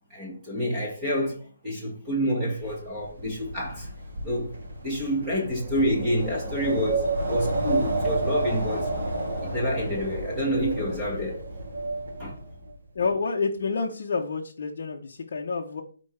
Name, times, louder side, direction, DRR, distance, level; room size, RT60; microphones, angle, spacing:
voice 1, 0.1-3.9 4.2-4.6 4.8-8.9 9.4-11.4 12.2-12.4, equal, 10° right, 1.5 m, -28 dB
Wind, 2.6-12.7, right 2 dB, 50° right, 2.5 m, -30 dB
voice 2, 12.9-15.8, left 4 dB, 35° left, 0.8 m, -28 dB
12.0 x 4.5 x 3.3 m
hypercardioid pair, 180°, 0 cm